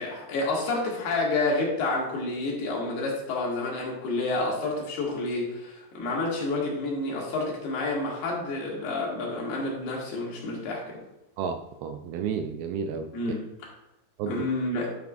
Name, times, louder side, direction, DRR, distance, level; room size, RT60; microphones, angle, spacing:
voice 1, 0.0-11.0 13.1-13.4 14.3-14.9, left 2 dB, 70° left, -2 dB, 3.9 m, -29 dB
voice 2, 11.4-13.1 14.2-14.5, right 6 dB, 80° right, 6 dB, 2.3 m, -32 dB
10.5 x 9.0 x 2.5 m, 0.93 s
omnidirectional pair, 4.7 m